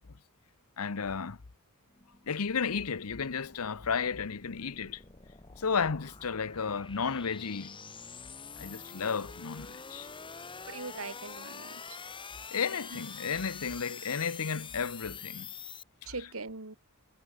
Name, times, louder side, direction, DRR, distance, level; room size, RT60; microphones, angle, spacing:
voice 1, 0.8-1.4 2.3-5.0 5.6-7.8 8.6-10.1 12.5-15.5 16.0-16.1, left 5 dB, 90° left, 0.9 m, -33 dB
sound 1, 1.9-15.8, left 5 dB, 25° left, 2.1 m, -46 dB
voice 2, 10.7-12.0 16.1-16.8, right 3 dB, 75° right, 2.2 m, -41 dB
head